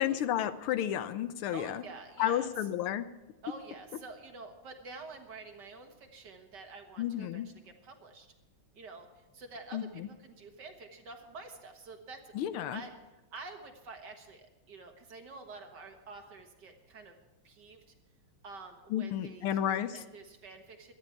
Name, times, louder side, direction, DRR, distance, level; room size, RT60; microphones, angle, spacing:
voice 1, 0.0-1.8 2.2-3.1 7.0-7.5 9.7-9.8 12.3-12.8 18.9-19.9, left 11 dB, 80° left, 12 dB, 1.6 m, -31 dB
voice 2, 1.5-2.5 3.4-8.3 8.7-12.3 12.7-17.2 17.4-18.0 18.4-20.9, right 3 dB, 55° right, 5 dB, 2.0 m, -48 dB
17.5 x 12.5 x 4.6 m, 1.0 s
omnidirectional pair, 2.4 m